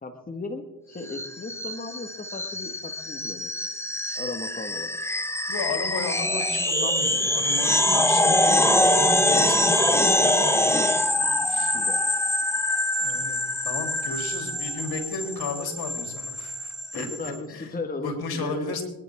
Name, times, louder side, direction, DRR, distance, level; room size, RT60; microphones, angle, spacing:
voice 1, 0.0-3.5 4.1-5.0 9.3-9.6 11.7-12.0 16.9-18.8, left 3 dB, 20° left, 5 dB, 1.8 m, -36 dB
sound 1, 1.1-17.3, left 1 dB, 5° left, 1.6 m, -24 dB
voice 2, 5.5-8.4 8.9-10.9 11.2-11.8 13.0-17.7 18.0-18.8, left 4 dB, 65° left, 3 dB, 3.7 m, -34 dB
26.0 x 10.5 x 3.7 m, 1.0 s
supercardioid pair, 65°, 40 cm